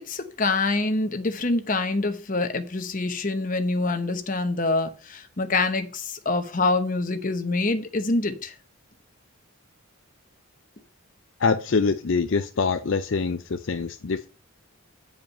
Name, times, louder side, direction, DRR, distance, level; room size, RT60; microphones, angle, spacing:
voice 1, 0.1-8.5, left 3 dB, 40° left, 0.9 m, -25 dB
voice 2, 11.4-14.3, left 4 dB, 60° left, 0.5 m, -24 dB
8.9 x 5.0 x 5.3 m
head